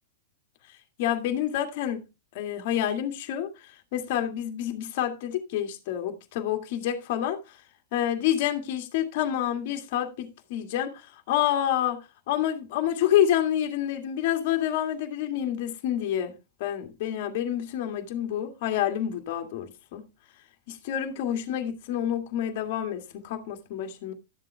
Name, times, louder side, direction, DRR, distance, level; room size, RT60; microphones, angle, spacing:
voice 1, 1.0-2.1 2.3-3.5 3.9-7.4 7.9-12.0 12.3-16.3 16.6-20.1 20.7-24.1, left 11 dB, 55° left, 2.0 m, -28 dB
12.5 x 7.6 x 3.4 m
hypercardioid pair, 115°, 0 cm